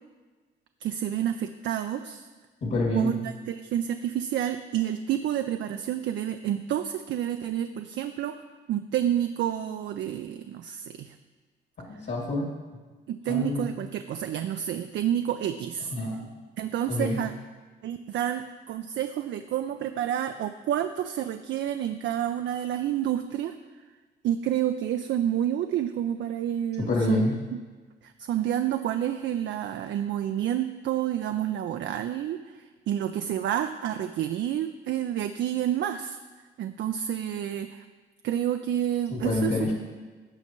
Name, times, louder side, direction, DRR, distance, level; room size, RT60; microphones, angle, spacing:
voice 1, 0.8-2.3 2.9-8.4 8.7-11.1 13.1-15.9 16.6-17.3 17.8-23.6 24.2-27.3 28.0-36.2 36.6-37.8 38.2-39.7, right 10 dB, 70° right, 7 dB, 0.5 m, -29 dB
voice 2, 2.6-3.2 12.0-12.5 13.3-13.7 15.9-16.2 16.9-17.2 26.8-27.3 39.1-39.7, left 2 dB, 60° left, -2 dB, 2.5 m, -27 dB
15.0 x 5.5 x 3.1 m, 1.3 s
cardioid pair, 90°, 20 cm